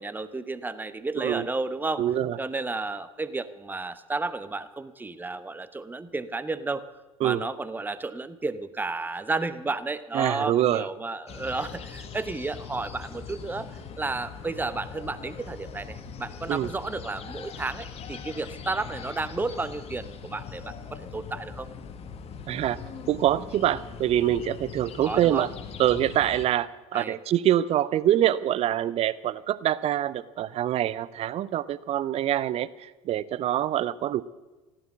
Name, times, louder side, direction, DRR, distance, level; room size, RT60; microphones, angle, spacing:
voice 1, 0.0-2.0 2.4-6.8 7.2-13.7 14.0-21.7 25.0-25.5 26.9-27.2, right 3 dB, 10° right, 14 dB, 0.9 m, -32 dB
voice 2, 1.2-1.5 2.0-2.4 7.2-7.4 10.1-10.9 16.5-16.7 22.5-22.8 23.1-25.5 25.8-34.2, right 12 dB, 35° right, 19 dB, 0.6 m, -25 dB
sound 1, 11.3-26.5, left 6 dB, 35° left, 1.5 m, -41 dB
16.0 x 11.5 x 7.3 m, 1.2 s
figure-of-eight pair, 65°, 18 cm